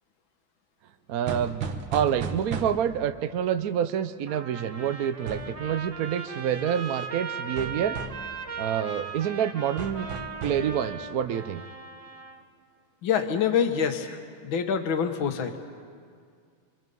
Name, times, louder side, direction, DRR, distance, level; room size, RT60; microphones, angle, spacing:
voice 1, 1.1-8.0 8.6-10.1 10.4-11.6, right 9 dB, 65° right, 10 dB, 0.9 m, -27 dB
sound 1, 1.3-3.0 5.3-5.6 7.6-8.3 9.8-10.7, right 5 dB, 85° right, 2.2 m, -34 dB
Trumpet, 4.3-12.4, right 5 dB, 25° right, 0.9 m, -38 dB
voice 2, 13.0-14.2 14.4-15.6, left 7 dB, 75° left, 6 dB, 2.0 m, -26 dB
26.5 x 25.5 x 5.4 m, 2.1 s
omnidirectional pair, 2.2 m